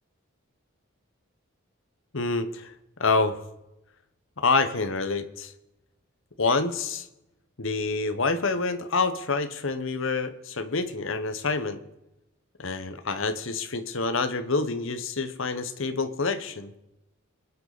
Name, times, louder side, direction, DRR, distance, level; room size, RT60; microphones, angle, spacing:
voice 1, 2.1-2.7 3.0-3.4 4.4-5.5 6.4-7.1 7.6-11.8 12.6-16.7, left 3 dB, 65° left, 10 dB, 1.1 m, -27 dB
25.5 x 9.6 x 4.1 m, 0.93 s
head